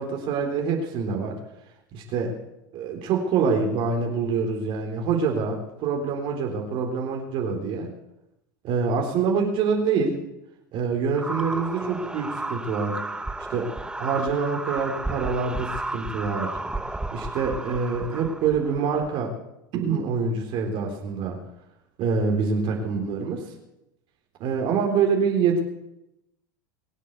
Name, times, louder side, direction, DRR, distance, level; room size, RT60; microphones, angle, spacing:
voice 1, 0.0-1.4 1.9-2.4 2.7-7.9 8.6-10.2 10.7-13.0 13.5-13.7 14.0-16.6 17.1-19.3 19.7-21.4 22.0-23.5 24.4-25.6, right 5 dB, 50° right, 2 dB, 3.7 m, -25 dB
sound 1, 11.1-19.2, right 2 dB, 5° right, 1.0 m, -33 dB
22.5 x 7.5 x 8.1 m, 0.87 s
hypercardioid pair, 90°, 11 cm